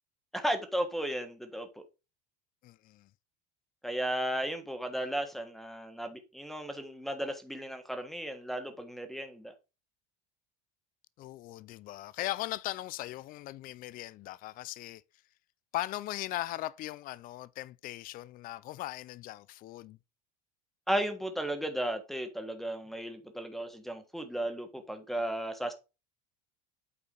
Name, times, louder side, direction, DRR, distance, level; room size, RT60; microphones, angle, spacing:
voice 1, 0.3-1.7 3.8-9.5 20.9-25.7, right 1 dB, ahead, 1.4 m, -35 dB
voice 2, 2.6-3.1 11.2-15.0 15.7-20.0, left 16 dB, 45° left, 0.5 m, -39 dB
8.6 x 4.4 x 5.3 m
supercardioid pair, 130°, 20 cm